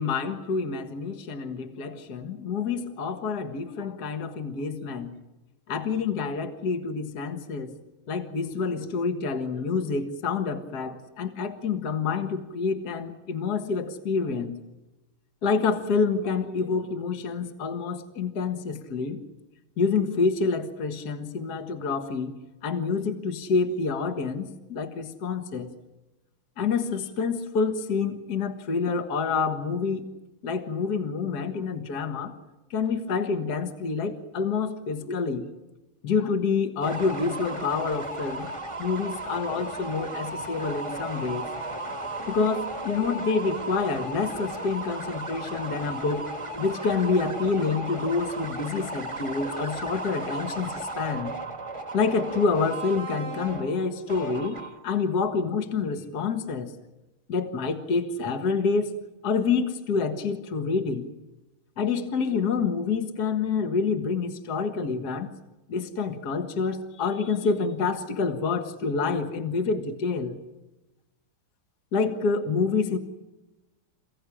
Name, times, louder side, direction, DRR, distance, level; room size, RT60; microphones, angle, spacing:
voice 1, 0.0-5.1 5.7-7.7 8.1-14.6 15.4-19.2 19.8-25.7 26.6-30.1 30.4-32.3 32.7-35.5 36.0-38.5 38.8-41.5 42.3-46.2 46.6-51.3 51.9-56.7 57.3-58.9 59.2-61.1 61.8-65.3 65.7-70.4 71.9-73.0, left 5 dB, 50° left, 7 dB, 2.0 m, -27 dB
sound 1, 36.8-55.0, right 2 dB, 15° right, 1.5 m, -35 dB
28.5 x 16.5 x 10.0 m, 1.0 s
omnidirectional pair, 2.3 m